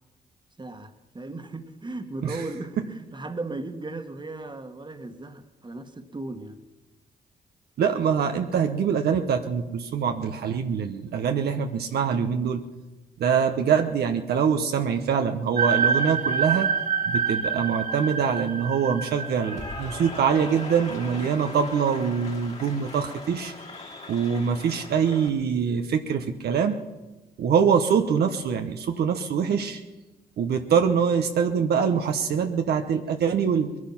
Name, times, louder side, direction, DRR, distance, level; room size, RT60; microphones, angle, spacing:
voice 1, 0.6-6.6, right 2 dB, 30° right, 8 dB, 1.6 m, -36 dB
voice 2, 7.8-12.6 13.2-16.7 17.1-23.5 24.1-26.8 27.4-29.8 30.4-33.7, right 7 dB, 80° right, 5 dB, 1.0 m, -24 dB
sound 1, 15.6-21.8, right 5 dB, 50° right, 1.4 m, -27 dB
Cheering / Applause, 19.0-25.3, left 3 dB, 40° left, 2.8 m, -40 dB
21.0 x 11.0 x 5.8 m, 1.1 s
supercardioid pair, 55°, 16 cm